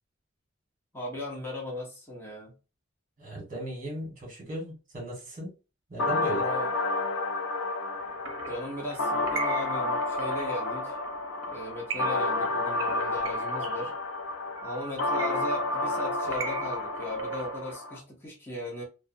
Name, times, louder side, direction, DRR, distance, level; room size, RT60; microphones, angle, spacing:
voice 1, 0.9-2.5 6.2-6.7 8.5-11.0 11.5-13.9 14.6-18.8, left 1 dB, 10° left, 0.9 m, -37 dB
voice 2, 3.2-5.5 5.9-6.4, equal, 40° right, 1.3 m, -36 dB
sound 1, 6.0-18.0, left 2 dB, 85° left, 0.5 m, -30 dB
sound 2, 8.0-17.8, right 4 dB, 70° right, 0.5 m, -40 dB
2.4 x 2.1 x 2.5 m
head